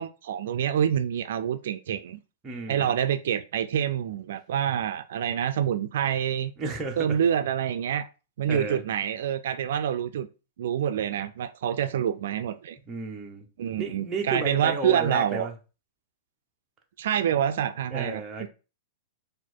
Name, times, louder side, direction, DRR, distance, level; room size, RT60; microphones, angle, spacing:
voice 1, 0.0-2.2 2.7-6.5 7.0-8.1 8.4-10.3 10.6-12.8 13.6-15.5 17.0-18.5, right 9 dB, 70° right, 0.3 m, -27 dB
voice 2, 2.4-2.9 6.6-7.2 8.5-8.8 12.9-13.5 13.8-15.5 17.9-18.5, right 3 dB, 15° right, 0.9 m, -32 dB
4.2 x 2.5 x 4.4 m
supercardioid pair, 155°, 0 cm